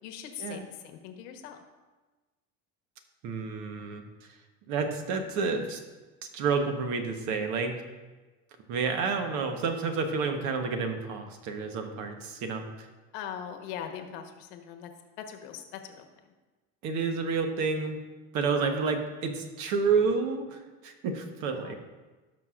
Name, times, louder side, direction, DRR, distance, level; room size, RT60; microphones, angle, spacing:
voice 1, 0.0-1.6 13.1-14.9 15.2-16.3 21.6-21.8, left 9 dB, 75° left, 5 dB, 1.2 m, -41 dB
voice 2, 3.2-4.0 4.7-5.8 6.3-7.8 8.7-12.9 16.8-18.0 18.3-21.8, right 5 dB, 60° right, 5 dB, 1.2 m, -29 dB
17.0 x 6.1 x 2.5 m, 1.2 s
cardioid pair, 135°, 33 cm